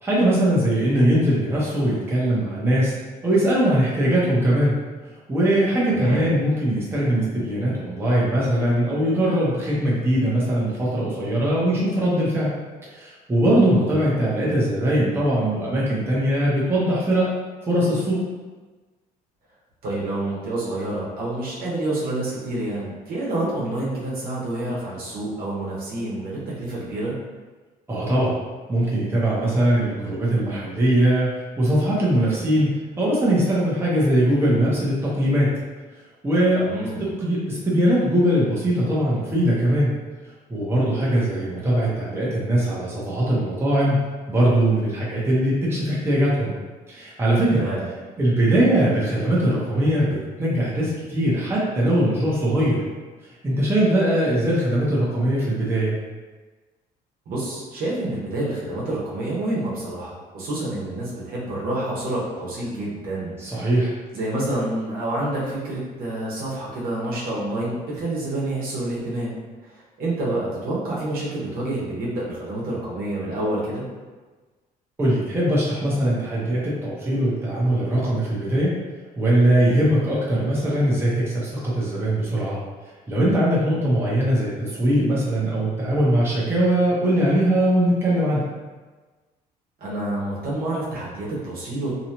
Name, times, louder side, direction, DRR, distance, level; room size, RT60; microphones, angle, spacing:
voice 1, 0.0-2.9 3.2-4.7 5.3-12.5 12.9-17.3 17.6-18.2 27.9-28.4 28.7-35.5 36.2-36.7 37.0-39.9 40.5-44.0 44.3-46.5 46.9-47.6 48.2-52.8 53.4-55.9 63.4-63.9 75.0-78.7 79.2-82.6 83.1-88.4, right 1 dB, 15° right, -7 dB, 0.8 m, -21 dB
voice 2, 5.9-6.3 13.7-13.9 19.8-27.2 36.6-37.1 47.6-47.9 57.3-63.7 64.1-73.8 89.8-91.9, right 1 dB, 60° right, -6 dB, 1.0 m, -28 dB
2.8 x 2.3 x 2.9 m, 1.3 s
cardioid pair, 110°, 17 cm